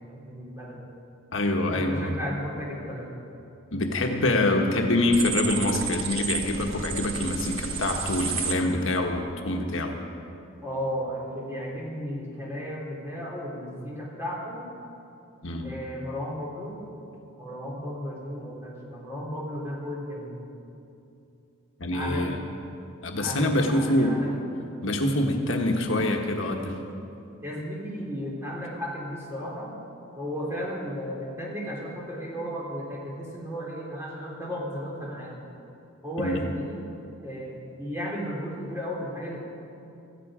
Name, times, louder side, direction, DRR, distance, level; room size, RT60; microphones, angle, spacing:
voice 1, 0.1-0.8 1.7-3.1 10.6-14.6 15.6-16.8 17.4-20.4 21.9-22.4 23.2-24.3 27.4-29.8 30.2-35.4 36.0-36.8 37.2-39.4, equal, 15° right, -4 dB, 3.3 m, -34 dB
voice 2, 1.3-2.1 3.7-10.0 15.4-15.7 21.8-22.4 23.0-24.2 24.8-26.7 36.2-36.5, left 1 dB, 75° left, 2 dB, 1.4 m, -25 dB
sound 1, 5.1-8.5, right 6 dB, 75° right, 1.3 m, -31 dB
17.5 x 14.0 x 5.0 m, 2.7 s
head